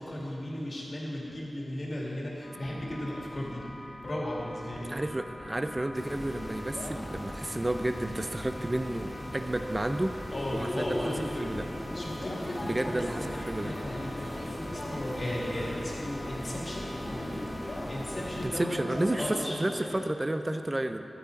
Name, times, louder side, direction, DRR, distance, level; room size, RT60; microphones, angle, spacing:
voice 1, 0.0-3.6 4.0-4.9 10.3-11.5 11.9-18.8 19.2-19.6, left 1 dB, 45° left, -4 dB, 2.3 m, -36 dB
sound 1, 2.4-19.3, left 1 dB, 85° left, 2.0 m, -43 dB
voice 2, 4.9-10.2 10.5-11.7 12.6-13.7 18.4-21.1, right 1 dB, 25° right, 8 dB, 0.5 m, -31 dB
sound 2, 5.9-18.5, equal, 5° left, 1.5 m, -42 dB
sound 3, 10.3-20.0, left 1 dB, 25° left, 2.2 m, -39 dB
12.0 x 8.8 x 4.0 m, 2.9 s
wide cardioid pair, 75°, 0 cm